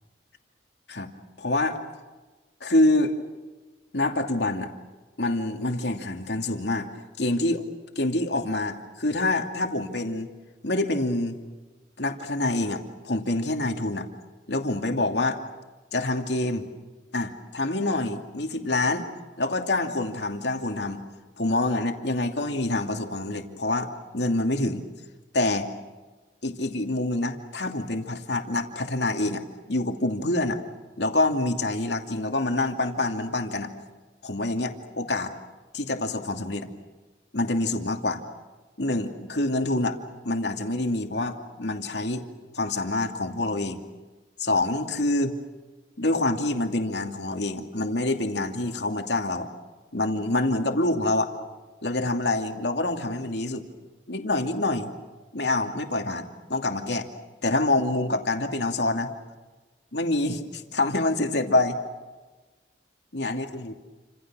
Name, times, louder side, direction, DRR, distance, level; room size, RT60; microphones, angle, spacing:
voice 1, 1.4-1.8 2.6-3.2 3.9-4.7 5.2-6.9 7.2-7.6 8.0-10.3 10.6-11.4 12.0-14.1 14.5-15.4 15.9-16.7 17.1-19.1 19.4-21.0 21.4-24.8 25.3-25.7 26.4-29.4 29.7-30.6 31.0-33.7 34.2-35.3 35.7-36.7 37.3-38.2 38.8-40.0 40.2-42.2 42.5-43.8 44.4-45.4 46.0-49.5 49.9-51.3 51.8-53.6 54.1-54.9 55.3-57.1 57.4-59.1 59.9-61.8 63.1-63.7, left 2 dB, 70° left, 4 dB, 2.6 m, -26 dB
29.5 x 27.0 x 6.3 m, 1.2 s
head